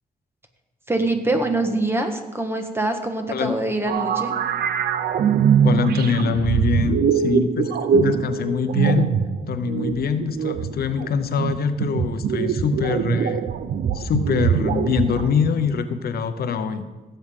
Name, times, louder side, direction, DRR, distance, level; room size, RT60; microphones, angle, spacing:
voice 1, 0.9-4.3, right 2 dB, 15° right, 5 dB, 1.3 m, -24 dB
sound 1, 3.9-15.7, right 7 dB, 90° right, 0.6 m, -22 dB
voice 2, 5.6-9.1 9.5-13.4 13.9-16.8, left 6 dB, 85° left, 10 dB, 0.7 m, -24 dB
17.0 x 7.8 x 3.7 m, 1.2 s
cardioid pair, 100°, 16 cm